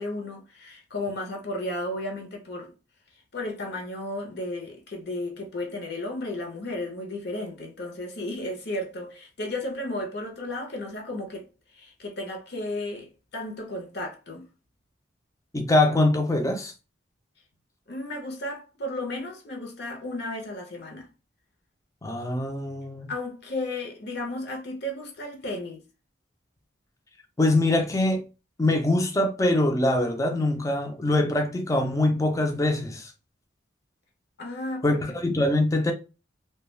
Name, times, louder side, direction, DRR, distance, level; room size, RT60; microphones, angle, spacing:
voice 1, 0.0-2.7 3.3-11.4 11.7-14.4 17.9-21.1 23.1-25.8 34.4-35.2, left 1 dB, 60° left, 0.7 m, -34 dB
voice 2, 15.5-16.7 22.0-23.1 27.4-28.2 28.6-33.1 34.8-35.0 35.2-35.9, left 2 dB, 15° left, 0.4 m, -23 dB
2.3 x 2.2 x 3.1 m
head